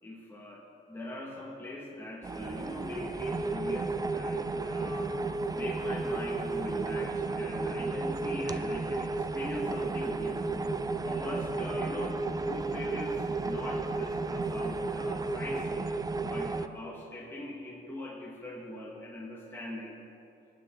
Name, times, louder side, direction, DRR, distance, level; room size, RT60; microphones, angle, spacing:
voice 1, 0.0-5.1 5.5-10.5 11.0-15.9 16.2-20.0, left 1 dB, 10° left, -4 dB, 2.1 m, -42 dB
sound 1, 2.2-16.7, right 3 dB, 20° right, 0.6 m, -33 dB
20.0 x 9.1 x 4.0 m, 2.6 s
cardioid pair, 90°, 20 cm